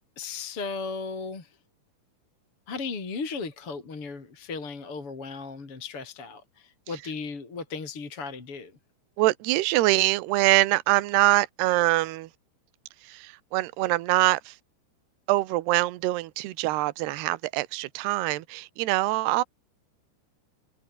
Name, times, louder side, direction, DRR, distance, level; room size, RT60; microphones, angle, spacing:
voice 1, 0.2-1.6 2.7-8.8, left 4 dB, 30° left, 4.4 m, -36 dB
voice 2, 9.2-12.3 13.0-14.6 15.3-19.4, right 18 dB, 70° right, 2.8 m, -24 dB
omnidirectional pair, 5.8 m